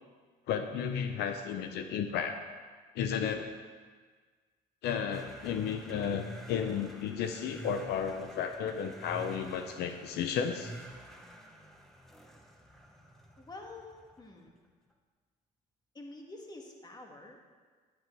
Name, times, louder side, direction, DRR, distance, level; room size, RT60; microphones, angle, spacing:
voice 1, 0.5-2.4 2.9-3.5 4.8-10.7, left 7 dB, 80° left, 7 dB, 0.7 m, -33 dB
sound 1, 5.1-14.5, right 1 dB, ahead, 1.2 m, -49 dB
voice 2, 13.4-14.6 15.9-17.4, left 2 dB, 25° left, 2 dB, 1.7 m, -48 dB
10.5 x 10.0 x 4.6 m, 1.5 s
cardioid pair, 110°, 17 cm